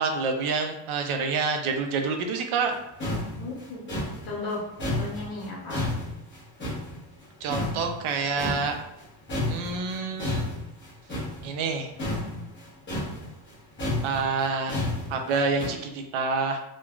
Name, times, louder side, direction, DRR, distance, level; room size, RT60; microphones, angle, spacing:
voice 1, 0.0-2.7 7.4-8.8 9.5-10.4 11.4-11.9 14.0-14.8 15.1-16.6, right 4 dB, 85° right, 4 dB, 0.6 m, -27 dB
sound 1, 2.7-2.8 3.0-7.2 7.5-9.0 9.3-15.7, left 1 dB, 25° left, 0.7 m, -31 dB
voice 2, 3.4-3.8 4.2-5.9, left 2 dB, 65° left, -4 dB, 1.0 m, -35 dB
3.1 x 2.1 x 2.3 m, 0.83 s
cardioid pair, 170°, 48 cm